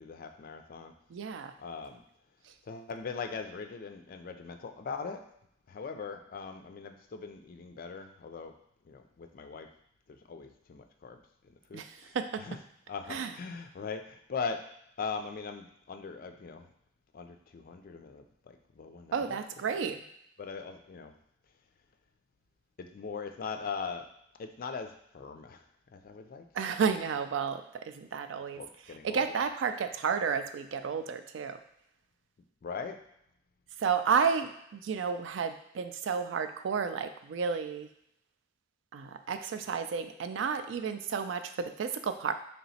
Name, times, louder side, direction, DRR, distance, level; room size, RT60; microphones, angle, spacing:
voice 1, 0.0-0.9 1.6-2.0 2.7-5.2 5.7-8.5 8.9-9.7 10.1-11.2 11.5-12.1 12.4-12.6 12.9-14.6 15.0-16.7 17.1-19.4 20.4-21.1 22.8-24.0 24.4-25.6 25.9-26.4 28.6-29.4 32.6-33.0, left 5 dB, 50° left, 7 dB, 0.4 m, -40 dB
voice 2, 1.1-1.5 11.7-12.4 13.1-13.3 19.1-20.0 26.5-28.6 29.0-31.6 33.8-37.9 38.9-42.3, right 6 dB, 90° right, 9 dB, 0.4 m, -31 dB
3.4 x 2.9 x 4.1 m, 0.74 s
head